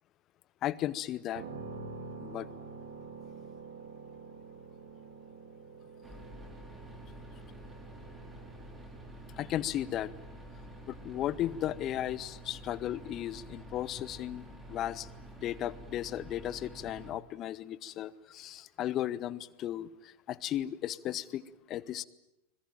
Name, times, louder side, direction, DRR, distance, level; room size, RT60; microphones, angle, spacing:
voice 1, 0.6-1.4 2.2-2.5 9.4-10.1 10.9-15.1 15.4-22.0, left 12 dB, 35° left, 20 dB, 1.0 m, -35 dB
sound 1, 1.3-15.1, right 4 dB, 55° right, 3.9 m, -49 dB
sound 2, 6.0-17.1, right 1 dB, 10° right, 4.0 m, -49 dB
25.5 x 21.5 x 9.2 m, 0.89 s
figure-of-eight pair, 90°, 0 cm